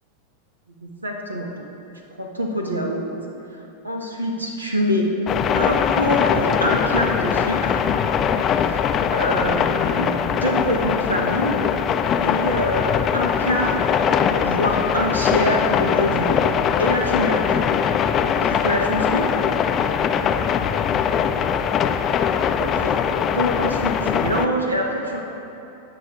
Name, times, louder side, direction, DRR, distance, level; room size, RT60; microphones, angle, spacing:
voice 1, 0.8-1.5 2.2-3.0 3.5-5.1 5.5-7.8 9.1-11.6 12.2-13.8 14.3-16.5 16.8-17.6 18.4-19.2 22.6-22.9 23.3-25.2, equal, 80° right, 1 dB, 1.2 m, -25 dB
sound 1, 5.3-24.5, left 7 dB, 30° left, 0.4 m, -21 dB
17.0 x 6.2 x 3.7 m, 2.9 s
figure-of-eight pair, 90°, 0 cm